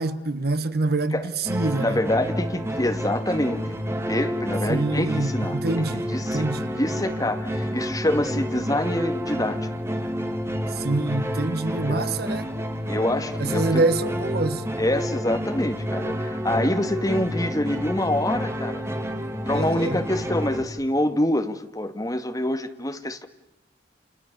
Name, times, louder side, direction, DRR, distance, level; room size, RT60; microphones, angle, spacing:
voice 1, 0.0-2.0 4.7-6.7 10.7-12.5 13.4-14.6 19.5-20.0, right 2 dB, 60° right, 1.4 m, -26 dB
sound 1, 1.5-20.6, equal, 15° right, 1.9 m, -29 dB
voice 2, 1.8-3.6 4.1-5.6 5.9-9.7 11.9-12.2 12.9-13.8 14.8-18.8 19.5-23.3, left 1 dB, 20° left, 1.9 m, -26 dB
29.5 x 29.5 x 6.8 m
head